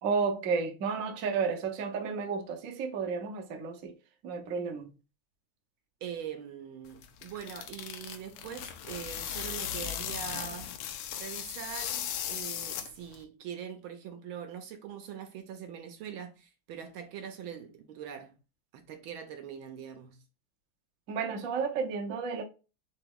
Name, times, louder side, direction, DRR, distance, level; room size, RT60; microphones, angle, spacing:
voice 1, 0.0-3.9 4.2-4.9 21.1-22.4, right 5 dB, 55° right, 0.9 m, -32 dB
voice 2, 6.0-10.7 11.2-18.4 18.7-20.2, right 8 dB, 75° right, 1.4 m, -42 dB
sound 1, 6.9-13.2, left 10 dB, 85° left, 1.6 m, -37 dB
4.1 x 3.3 x 3.7 m
omnidirectional pair, 2.4 m